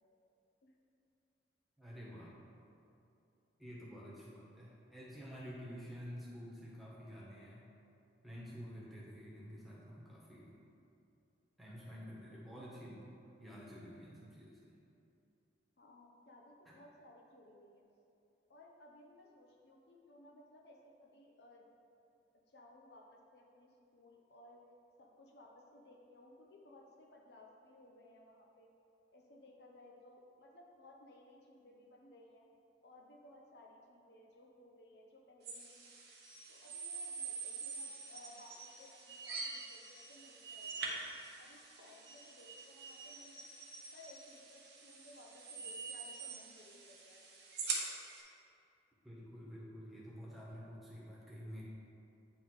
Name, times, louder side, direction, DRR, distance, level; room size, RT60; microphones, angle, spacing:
voice 1, 1.8-2.3 3.6-7.6 8.2-10.6 11.6-13.1 13.4-14.8 49.0-51.6, equal, ahead, -7 dB, 1.3 m, -50 dB
voice 2, 15.8-17.8 18.5-21.7 22.5-24.6 25.0-28.7 29.1-32.5 32.8-36.0 36.5-41.0 41.4-43.5 43.9-47.2, left 1 dB, 65° left, 0 dB, 0.7 m, -60 dB
sound 1, 35.4-48.2, right 4 dB, 60° right, 1.1 m, -45 dB
9.3 x 3.5 x 4.7 m, 2.7 s
head